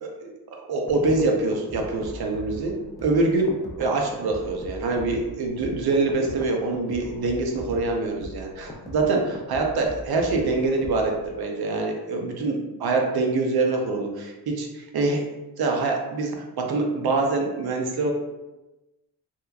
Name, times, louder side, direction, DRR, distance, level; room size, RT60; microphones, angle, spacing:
voice 1, 0.0-0.3 0.6-2.7 3.0-15.2 15.6-18.1, right 3 dB, 70° right, 2 dB, 0.6 m, -25 dB
sound 1, 0.9-11.3, equal, 10° left, 0.4 m, -41 dB
2.9 x 2.2 x 2.3 m, 1.0 s
cardioid pair, 85°, 40 cm